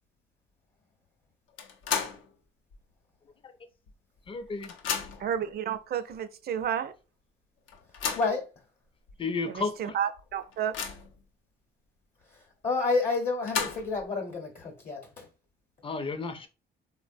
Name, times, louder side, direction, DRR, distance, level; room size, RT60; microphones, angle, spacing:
sound 1, 1.6-2.3 2.7-2.8 3.9-4.0 4.3-5.4 6.1-6.2 6.6-6.7 7.7-8.4 9.1-9.2 9.6-9.7 10.2-11.2 13.1-14.1, left 6 dB, 80° left, 0.5 m, -34 dB
voice 1, 4.3-4.7 5.2-5.3 9.2-10.0 15.8-16.5, left 4 dB, 25° left, 0.4 m, -33 dB
voice 2, 5.2-6.9 9.5-10.7, right 9 dB, 50° right, 0.4 m, -31 dB
voice 3, 8.1-8.5 12.6-15.3, left 3 dB, 45° left, 0.8 m, -29 dB
3.2 x 2.0 x 2.5 m
cardioid pair, 90°, 20 cm